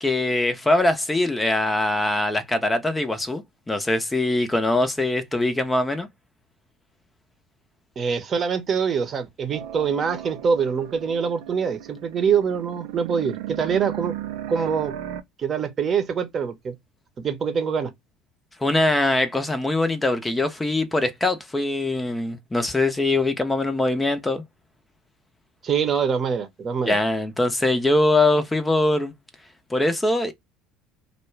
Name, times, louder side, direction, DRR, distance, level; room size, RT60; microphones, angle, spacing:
voice 1, 0.0-3.4 3.7-6.1 18.6-24.4 26.9-29.1 29.7-30.3, left 2 dB, 15° left, 0.6 m, -22 dB
voice 2, 8.0-14.1 14.5-14.9 15.4-16.8 17.2-17.9 25.6-27.0, right 6 dB, 40° right, 0.8 m, -24 dB
sound 1, 9.5-15.2, right 12 dB, 75° right, 0.4 m, -36 dB
2.3 x 2.2 x 3.0 m
hypercardioid pair, 75°, 0 cm